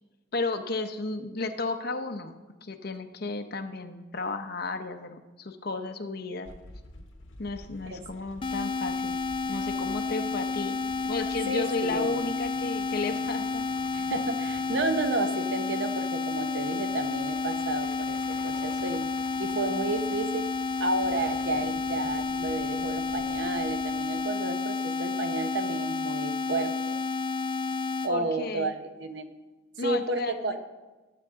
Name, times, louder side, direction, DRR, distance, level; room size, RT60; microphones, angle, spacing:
voice 1, 0.3-6.5 7.4-9.2 9.5-10.8 11.0-13.6 28.1-28.7 29.8-30.3, left 3 dB, 50° left, 6 dB, 0.8 m, -33 dB
Truck, 6.5-24.2, left 2 dB, 75° left, 1.1 m, -50 dB
sound 1, 8.4-28.1, left 4 dB, 25° left, 0.4 m, -31 dB
voice 2, 11.5-12.3 13.9-19.0 19.4-20.5 20.8-27.0 28.0-29.3 29.8-30.6, right 2 dB, 60° right, 8 dB, 0.8 m, -31 dB
18.5 x 7.8 x 3.7 m, 1.2 s
head